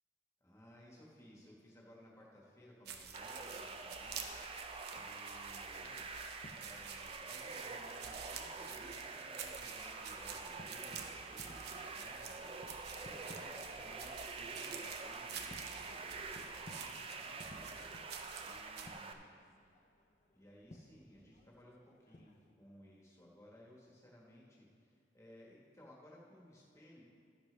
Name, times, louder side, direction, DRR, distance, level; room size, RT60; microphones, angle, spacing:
voice 1, 0.4-4.5 4.9-6.1 6.5-19.3 20.3-27.0, left 1 dB, 15° left, -3 dB, 1.4 m, -60 dB
sound 1, 2.9-18.9, right 7 dB, 55° right, 0.8 m, -50 dB
sound 2, 3.1-19.1, right 4 dB, 30° right, 0.5 m, -46 dB
sound 3, 6.1-22.5, left 1 dB, 35° left, 0.7 m, -61 dB
12.0 x 10.0 x 3.3 m, 2.5 s
head